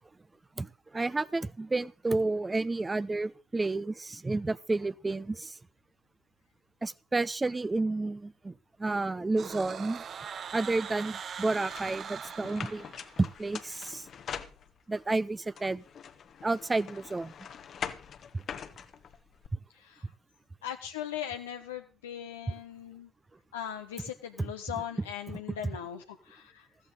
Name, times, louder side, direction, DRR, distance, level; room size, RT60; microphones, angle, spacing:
voice 1, 0.6-5.6 6.8-8.5 8.8-10.0 10.5-12.9 13.2-14.1 14.9-15.8 16.4-17.3 18.3-18.4 24.4-24.5, right 3 dB, 20° right, 0.7 m, -31 dB
sound 1, 9.4-13.4, right 7 dB, 50° right, 0.9 m, -41 dB
sound 2, 11.7-15.0 15.6-19.5, left 7 dB, 50° left, 1.1 m, -43 dB
voice 2, 19.7-20.1 20.6-23.1 23.5-26.7, left 10 dB, 85° left, 0.7 m, -39 dB
14.0 x 14.0 x 3.9 m
hypercardioid pair, 50°, 0 cm